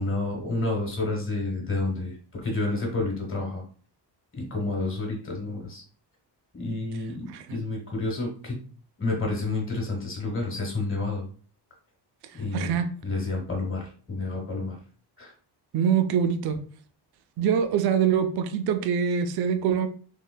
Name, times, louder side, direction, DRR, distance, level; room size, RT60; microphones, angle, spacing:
voice 1, 0.0-3.6 4.3-5.8 6.5-8.6 9.0-11.3 12.3-14.8 15.2-15.3, left 2 dB, 30° left, 0 dB, 1.2 m, -30 dB
voice 2, 12.5-12.9 15.7-16.6 17.4-19.9, right 7 dB, 60° right, 9 dB, 0.5 m, -24 dB
3.6 x 3.2 x 2.2 m, 0.43 s
cardioid pair, 145°, 43 cm